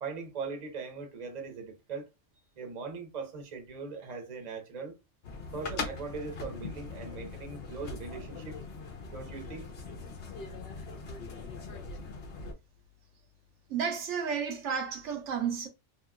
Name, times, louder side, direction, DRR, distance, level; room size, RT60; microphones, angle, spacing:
voice 1, 0.0-2.1 2.6-4.9 5.5-8.6 9.1-9.7, right 4 dB, 40° right, 0.8 m, -40 dB
sound 1, 5.2-12.5, left 4 dB, 60° left, 0.9 m, -41 dB
voice 2, 13.7-15.7, right 7 dB, 80° right, 1.1 m, -32 dB
2.9 x 2.8 x 2.3 m
omnidirectional pair, 1.2 m